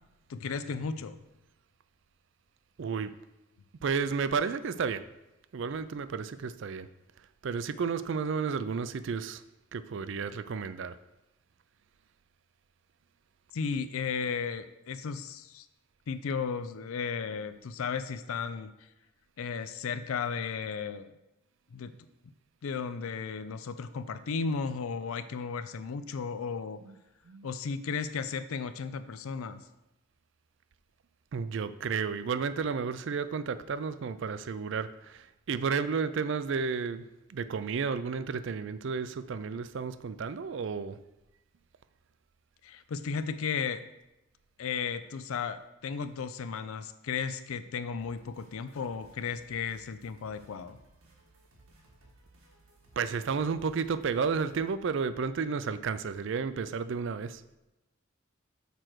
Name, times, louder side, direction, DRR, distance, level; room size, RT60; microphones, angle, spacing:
voice 1, 0.3-1.2 13.5-15.7 16.1-18.7 19.4-21.1 21.7-21.9 22.6-26.8 27.4-29.6 42.6-43.8 44.6-50.8, left 5 dB, 85° left, 11 dB, 0.4 m, -34 dB
voice 2, 2.8-3.1 3.8-5.0 5.5-6.9 7.4-9.4 9.7-11.0 26.8-27.0 27.3-27.5 31.3-37.0 37.3-41.0 53.0-57.4, right 5 dB, 60° right, 14 dB, 0.4 m, -32 dB
sound 1, 48.0-54.7, right 1 dB, 85° right, 1.7 m, -60 dB
6.8 x 4.4 x 6.1 m, 0.98 s
head